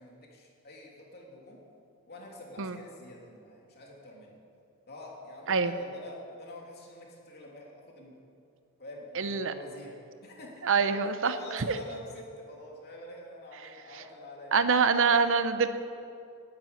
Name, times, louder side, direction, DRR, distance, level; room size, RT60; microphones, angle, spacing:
voice 1, 0.0-1.6 2.1-4.4 4.9-8.2 8.8-10.0 10.2-14.5 15.2-15.5, left 1 dB, 50° left, -2 dB, 2.9 m, -46 dB
voice 2, 9.2-9.5 10.6-11.8 14.5-15.7, right 5 dB, 60° right, 11 dB, 0.7 m, -25 dB
12.5 x 9.4 x 9.4 m, 2.5 s
head